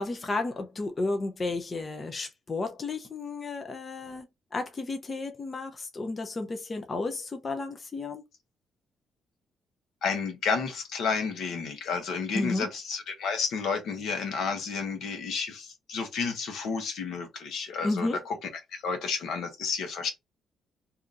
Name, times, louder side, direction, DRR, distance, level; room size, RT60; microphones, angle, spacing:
voice 1, 0.0-4.3 4.5-8.2 12.3-12.7 17.8-18.2, left 3 dB, 30° left, 0.7 m, -32 dB
voice 2, 10.0-20.1, left 5 dB, 75° left, 1.1 m, -31 dB
2.8 x 2.6 x 3.6 m
cardioid pair, 90°, 0 cm